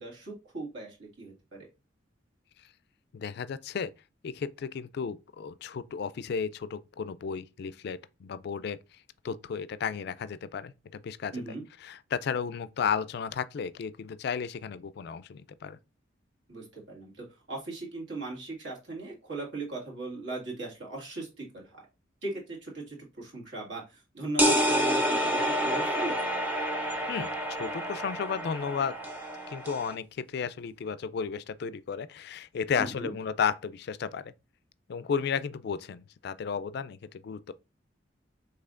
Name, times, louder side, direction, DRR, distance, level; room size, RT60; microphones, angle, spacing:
voice 1, 0.0-1.7 11.3-11.6 16.5-21.8 22.2-26.2 32.8-33.1, right 2 dB, 70° right, 2.0 m, -38 dB
voice 2, 3.1-3.9 4.2-8.8 9.2-11.3 11.8-15.8 27.1-28.9 29.5-34.3 34.9-37.5, left 6 dB, 55° left, 0.3 m, -33 dB
sound 1, 24.4-29.9, equal, 10° right, 0.6 m, -28 dB
5.5 x 3.4 x 2.5 m
head